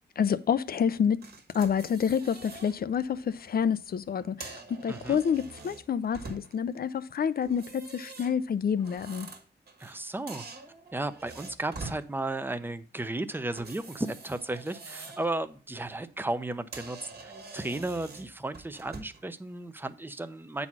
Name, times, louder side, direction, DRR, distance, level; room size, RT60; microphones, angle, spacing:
voice 1, 0.2-1.2 1.5-9.3, left 7 dB, 55° left, 0.5 m, -28 dB
sound 1, 1.2-2.8 3.2-3.4 4.2-6.7 7.4-10.0 10.3-12.0 13.5-15.3 15.7-15.9 16.4-16.5 16.7-19.3, right 3 dB, 60° right, 1.5 m, -45 dB
voice 2, 4.9-5.2 9.8-10.4 10.9-20.7, right 2 dB, 10° right, 0.6 m, -34 dB
8.6 x 4.1 x 6.0 m
cardioid pair, 85°, 18 cm